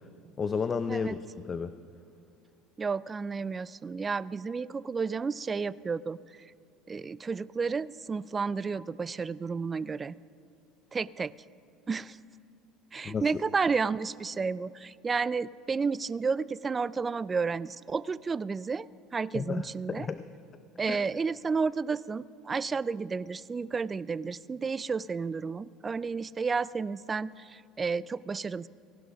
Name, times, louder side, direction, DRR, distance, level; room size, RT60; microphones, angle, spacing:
voice 1, 0.4-1.7 13.0-13.3 19.3-20.2 20.9-21.0, left 5 dB, 30° left, 12 dB, 0.5 m, -32 dB
voice 2, 2.8-6.2 6.9-10.1 10.9-11.3 11.9-12.2 12.9-18.9 19.1-20.1 20.8-28.7, right 5 dB, 25° right, 20 dB, 0.3 m, -31 dB
16.5 x 11.5 x 5.7 m, 2.4 s
supercardioid pair, 100°, 0 cm